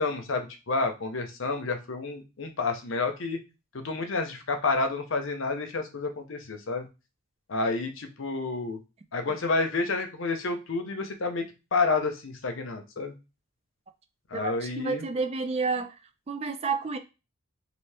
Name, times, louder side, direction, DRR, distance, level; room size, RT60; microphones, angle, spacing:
voice 1, 0.0-3.4 3.7-6.9 7.5-8.8 9.1-11.4 11.7-13.1 14.3-15.1, left 3 dB, 60° left, 0.7 m, -29 dB
voice 2, 14.3-15.9 16.3-17.0, right 4 dB, 30° right, 0.4 m, -30 dB
2.7 x 2.6 x 3.3 m
head